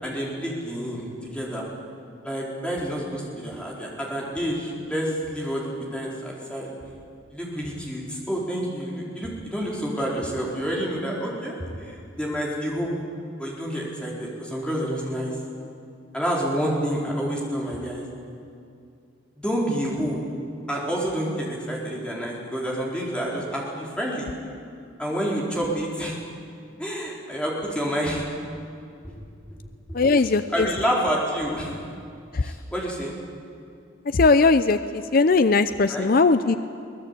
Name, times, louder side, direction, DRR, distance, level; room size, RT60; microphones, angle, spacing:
voice 1, 0.0-1.6 2.2-6.7 7.3-12.9 13.4-15.3 16.1-18.0 19.4-20.2 20.7-24.3 25.0-26.2 26.8-28.2 29.0-29.1 29.9-31.7 32.4-33.1 35.9-36.1, equal, 5° left, -4 dB, 4.4 m, -28 dB
voice 2, 29.9-30.7 32.3-32.4 34.1-34.8 35.1-36.6, left 3 dB, 45° left, 11 dB, 0.5 m, -19 dB
23.0 x 19.0 x 8.4 m, 2.5 s
head